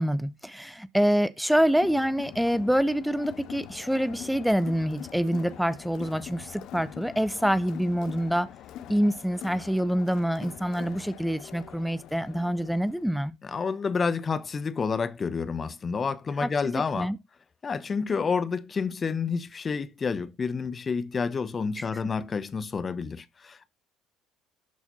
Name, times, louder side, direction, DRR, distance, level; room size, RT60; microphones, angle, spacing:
voice 1, 0.0-8.5 8.9-13.4 16.4-16.5 16.7-17.2 21.8-21.9, equal, ahead, 0.5 m, -26 dB
Crowd, 1.5-13.1, left 11 dB, 65° left, 0.4 m, -44 dB
voice 2, 13.4-17.1 17.6-23.8, left 5 dB, 35° left, 0.8 m, -29 dB
12.5 x 4.2 x 2.8 m
hypercardioid pair, 60°, 0 cm